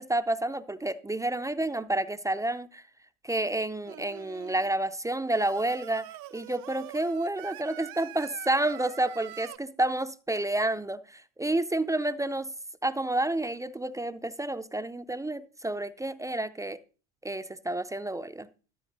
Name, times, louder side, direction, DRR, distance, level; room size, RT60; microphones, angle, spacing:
voice 1, 0.0-2.8 3.2-6.1 6.3-12.5 12.8-16.8 17.2-18.5, right 1 dB, 10° right, 12 dB, 0.4 m, -30 dB
Singing, 3.9-4.7 5.3-9.6, right 15 dB, 60° right, 0.8 m, -45 dB
13.0 x 7.2 x 4.0 m, 0.37 s
supercardioid pair, 95°, 40 cm